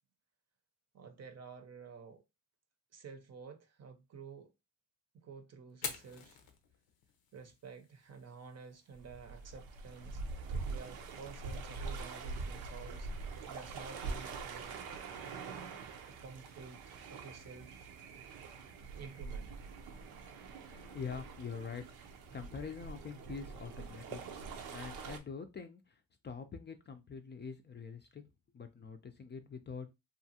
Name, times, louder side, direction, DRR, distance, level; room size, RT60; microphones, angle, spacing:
voice 1, 0.9-2.2 2.9-4.5 5.1-6.4 7.3-10.2 10.6-14.8 16.0-17.9 18.9-19.6, right 5 dB, 45° right, 0.7 m, -51 dB
Fire, 5.7-13.7, left 7 dB, 75° left, 0.7 m, -51 dB
sound 1, 8.9-25.2, right 4 dB, 80° right, 0.6 m, -44 dB
voice 2, 20.6-21.9 22.3-24.2 24.7-28.2 28.5-29.9, left 6 dB, 30° left, 0.5 m, -45 dB
2.7 x 2.4 x 2.7 m
supercardioid pair, 65°, 37 cm